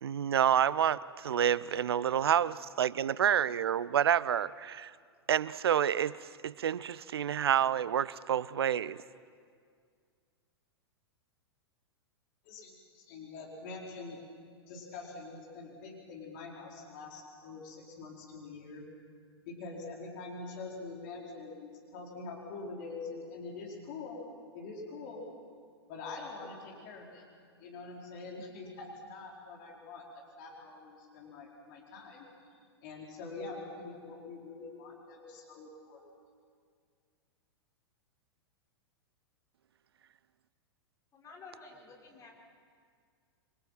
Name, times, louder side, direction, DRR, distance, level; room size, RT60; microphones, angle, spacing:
voice 1, 0.0-4.9 5.3-9.0, right 9 dB, 65° right, 20 dB, 0.6 m, -28 dB
voice 2, 12.4-14.2 14.7-18.8 19.5-24.2 24.5-25.2 25.9-27.2 27.6-30.0 30.4-32.5 32.8-36.0, left 3 dB, 45° left, -1 dB, 4.5 m, -45 dB
voice 3, 41.1-42.3, left 4 dB, 25° left, -1 dB, 5.0 m, -51 dB
28.0 x 23.5 x 5.9 m, 2.1 s
figure-of-eight pair, 100°, 14 cm